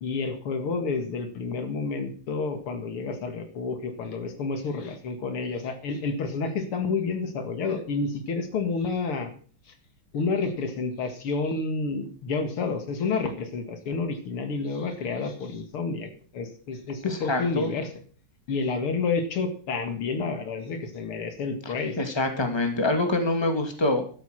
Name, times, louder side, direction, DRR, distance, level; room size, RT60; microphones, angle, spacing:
voice 1, 0.0-9.3 10.1-17.9 18.5-22.0, left 4 dB, 80° left, 7 dB, 2.8 m, -29 dB
voice 2, 17.0-17.7 22.0-24.0, left 2 dB, 10° left, 5 dB, 2.4 m, -25 dB
12.5 x 10.5 x 6.5 m, 0.43 s
omnidirectional pair, 2.4 m